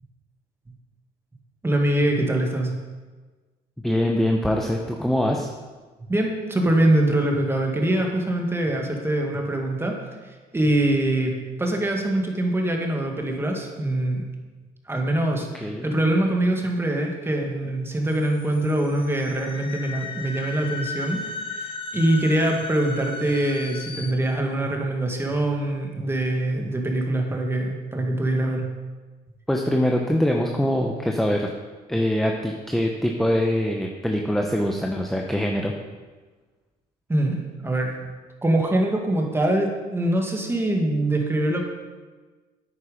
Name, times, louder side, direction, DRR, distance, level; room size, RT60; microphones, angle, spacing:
voice 1, 1.6-2.7 6.1-9.9 10.5-14.2 14.9-21.2 21.5-28.7 37.1-37.9 38.4-41.6, right 1 dB, 15° right, 1 dB, 1.9 m, -23 dB
voice 2, 3.8-5.5 15.6-15.9 29.5-31.5 31.9-35.7, left 1 dB, ahead, 1 dB, 0.8 m, -23 dB
sound 1, 18.1-24.1, left 3 dB, 30° left, 1.0 m, -36 dB
9.3 x 8.7 x 5.1 m, 1.3 s
cardioid pair, 110°, 17 cm